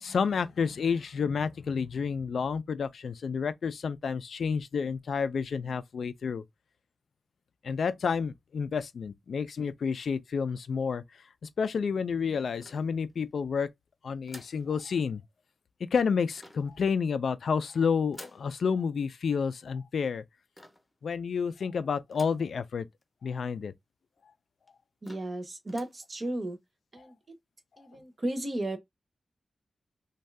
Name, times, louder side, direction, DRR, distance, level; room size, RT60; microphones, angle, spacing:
voice 1, 0.0-6.4 7.6-11.0 11.6-13.7 14.0-15.2 15.9-20.2 21.0-22.9 23.2-23.7 27.0-27.1, left 6 dB, 80° left, 0.3 m, -30 dB
sound 1, 12.6-13.4 14.3-14.7 16.4-16.8 18.1-18.5 20.6-20.9 22.1-22.5 23.0-23.1 23.3-23.4 24.2-24.3 24.7-24.8 25.0-25.4 25.7-26.0, left 1 dB, 10° left, 0.6 m, -51 dB
voice 2, 25.0-26.6 26.9-27.1 27.8-28.8, right 1 dB, 35° right, 0.6 m, -34 dB
2.6 x 2.3 x 3.2 m
wide cardioid pair, 135°, 0 cm